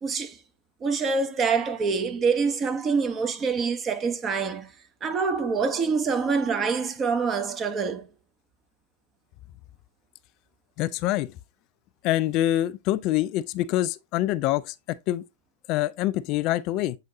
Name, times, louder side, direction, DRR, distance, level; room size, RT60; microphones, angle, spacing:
voice 1, 0.0-0.4 0.8-4.7 5.0-8.1, right 5 dB, 25° right, 1.0 m, -26 dB
voice 2, 10.8-11.3 12.0-15.2 15.7-17.0, left 14 dB, 40° left, 0.3 m, -25 dB
7.8 x 4.8 x 2.7 m
hypercardioid pair, 105°, 0 cm